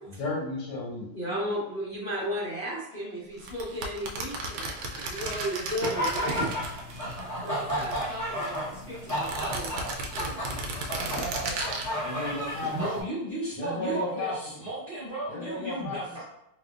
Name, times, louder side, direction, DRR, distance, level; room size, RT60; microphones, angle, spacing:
voice 1, 0.1-1.1 12.0-12.7 13.6-14.7 15.3-16.3, left 2 dB, 80° left, -3 dB, 1.9 m, -34 dB
voice 2, 1.1-6.5 7.4-9.7 10.1-10.4, equal, 45° left, -9 dB, 0.7 m, -34 dB
sound 1, 3.4-7.2 7.5-8.6 9.1-11.9, right 3 dB, 75° right, 1.1 m, -35 dB
sound 2, 5.8-13.0, equal, 30° left, 0.3 m, -33 dB
voice 3, 12.7-16.3, right 2 dB, 45° right, -10 dB, 0.7 m, -34 dB
4.2 x 2.4 x 2.4 m, 0.82 s
omnidirectional pair, 2.4 m